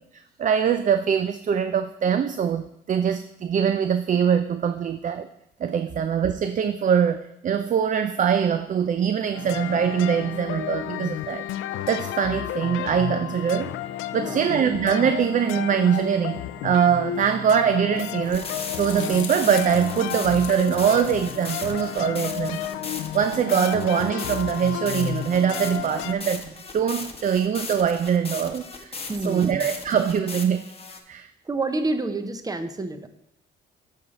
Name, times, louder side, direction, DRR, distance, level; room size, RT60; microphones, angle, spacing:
voice 1, 0.4-5.3 5.6-11.5 11.9-13.7 14.1-18.5 18.8-22.7 23.1-29.0 29.2-30.7 31.1-31.3, right 8 dB, 40° right, 10 dB, 0.4 m, -23 dB
sound 1, 9.3-26.1, left 11 dB, 90° left, 0.4 m, -32 dB
voice 2, 14.2-14.5 29.1-29.7 31.4-33.1, right 2 dB, 20° right, 9 dB, 0.7 m, -28 dB
sound 2, 18.0-21.7 22.2-22.7, left 8 dB, 70° left, 0.8 m, -41 dB
sound 3, 18.3-31.0, left 4 dB, 30° left, 0.9 m, -37 dB
8.2 x 5.7 x 4.0 m, 0.80 s
cardioid pair, 90°, 20 cm